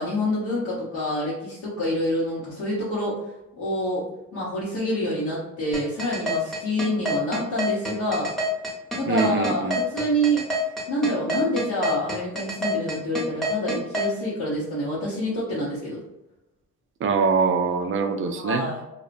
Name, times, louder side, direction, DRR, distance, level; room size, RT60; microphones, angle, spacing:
voice 1, 0.0-3.2 3.5-8.3 8.9-16.0 18.4-18.8, equal, 80° left, -8 dB, 0.9 m, -27 dB
sound 1, 5.7-14.1, equal, ahead, 0.8 m, -26 dB
voice 2, 9.1-9.8 17.0-18.7, right 4 dB, 45° right, 7 dB, 0.4 m, -23 dB
2.7 x 2.1 x 2.5 m, 0.93 s
cardioid pair, 90°, 30 cm